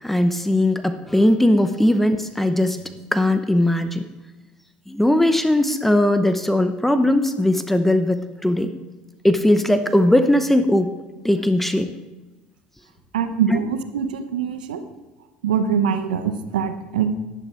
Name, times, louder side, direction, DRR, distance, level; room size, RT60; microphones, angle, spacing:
voice 1, 0.0-2.8 3.1-4.0 4.9-8.7 9.2-10.9 11.2-11.9 13.5-13.6, left 1 dB, 5° left, 9 dB, 0.8 m, -19 dB
voice 2, 13.1-14.8 15.4-17.2, right 7 dB, 85° right, 9 dB, 0.9 m, -23 dB
11.0 x 10.5 x 4.5 m, 1.1 s
hypercardioid pair, 80°, 4 cm